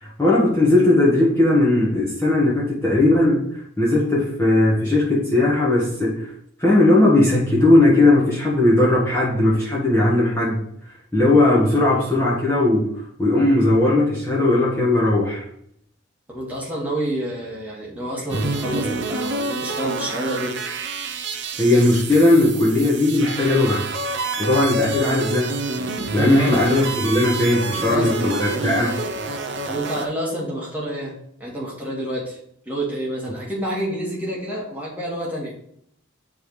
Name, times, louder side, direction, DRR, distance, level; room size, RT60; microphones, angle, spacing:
voice 1, 0.0-6.3 6.6-10.6 11.1-15.4 21.6-23.8 24.4-25.6 26.1-29.0, left 2 dB, 10° left, -7 dB, 1.4 m, -18 dB
voice 2, 16.3-20.6 26.3-26.6 27.8-28.1 29.6-31.1 31.4-32.4 32.6-35.5, right 1 dB, 10° right, -5 dB, 1.7 m, -28 dB
sound 1, 18.3-30.1, right 2 dB, 55° right, 0.7 m, -27 dB
9.3 x 3.5 x 3.1 m, 0.70 s
head